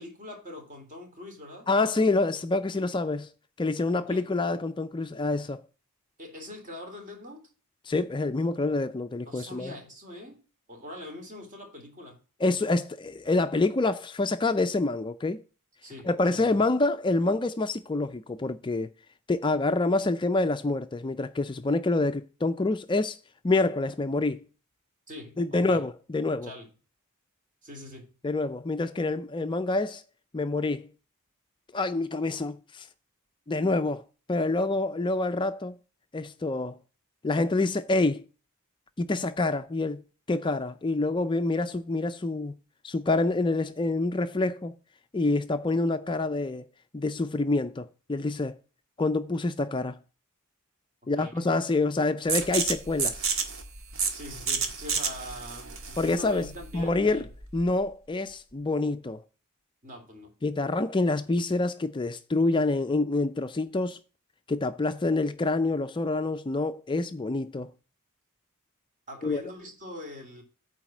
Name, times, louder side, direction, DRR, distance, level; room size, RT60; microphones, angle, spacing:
voice 1, 0.0-1.7 3.9-4.3 6.2-7.4 9.2-10.4 10.7-12.2 15.8-16.5 25.1-25.8 26.4-26.7 27.6-28.1 51.1-51.5 54.1-57.3 59.8-60.3 69.1-70.4, left 1 dB, 40° right, 3.2 m, -43 dB
voice 2, 1.7-3.3 3.6-5.6 7.9-9.7 12.4-15.4 16.0-18.9 19.3-23.2 23.4-24.4 25.4-26.5 28.2-30.0 30.3-30.9 31.7-32.9 33.5-34.0 34.3-35.8 36.1-36.8 37.2-38.2 39.0-40.0 40.3-42.5 42.8-44.7 45.1-46.7 46.9-48.6 49.0-50.0 51.1-53.3 56.0-57.3 57.5-59.2 60.4-64.0 64.5-67.7 69.2-69.4, left 2 dB, 20° left, 0.4 m, -27 dB
sound 1, 52.3-57.8, right 5 dB, 65° right, 1.7 m, -31 dB
9.2 x 4.1 x 7.2 m
head